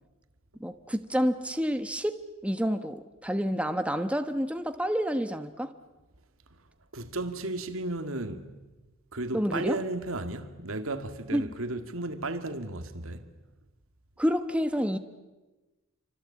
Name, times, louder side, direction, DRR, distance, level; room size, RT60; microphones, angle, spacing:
voice 1, 0.6-5.7 9.3-9.8 11.3-11.5 14.2-15.0, equal, 5° right, 1.0 m, -29 dB
voice 2, 6.9-8.5 9.1-13.3, right 2 dB, 80° right, 2.0 m, -34 dB
28.0 x 25.0 x 8.5 m
head